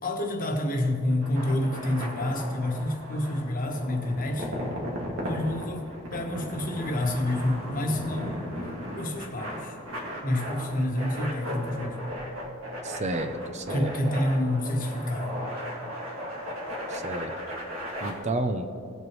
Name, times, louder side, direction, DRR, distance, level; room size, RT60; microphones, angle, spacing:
voice 1, 0.0-4.5 5.2-5.8 6.1-8.4 8.9-9.8 10.2-12.0 13.7-15.6, left 1 dB, 45° left, 3 dB, 1.2 m, -28 dB
sound 1, 1.1-18.1, equal, 85° right, 2.1 m, -36 dB
voice 2, 12.8-13.9 16.9-17.4 18.0-18.7, right 2 dB, 35° right, 6 dB, 0.6 m, -31 dB
18.5 x 7.9 x 3.1 m, 2.3 s
head